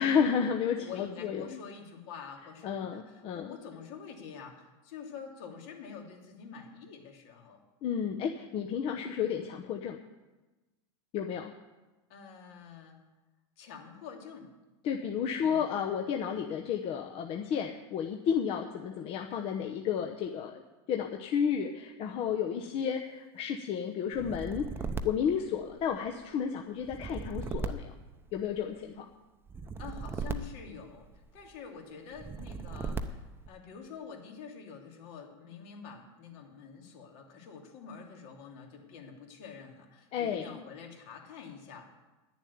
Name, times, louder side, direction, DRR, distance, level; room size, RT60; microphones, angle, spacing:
voice 1, 0.0-1.6 2.6-3.6 7.8-10.0 11.1-11.5 14.8-20.6 20.9-24.7 25.0-27.9 28.3-29.1 40.1-40.6, left 7 dB, 40° left, 3 dB, 0.9 m, -32 dB
voice 2, 0.8-7.6 12.1-13.0 13.6-14.5 15.3-15.8 22.5-22.7 29.8-31.1 31.3-41.9, left 6 dB, 60° left, 2 dB, 2.7 m, -47 dB
sound 1, 24.1-26.1 26.8-28.7 29.5-31.4 32.1-33.5, right 4 dB, 15° right, 0.8 m, -38 dB
10.5 x 7.2 x 9.4 m, 1.1 s
supercardioid pair, 130°, 15 cm